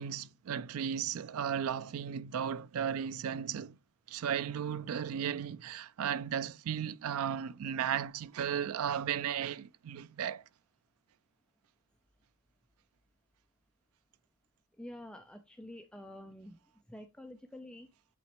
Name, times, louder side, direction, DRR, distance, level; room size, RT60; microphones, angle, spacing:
voice 1, 0.0-3.8 4.1-10.4, right 8 dB, 70° right, 0.4 m, -35 dB
voice 2, 14.8-16.6 16.9-17.9, left 1 dB, 5° left, 0.5 m, -48 dB
8.7 x 4.0 x 3.1 m
head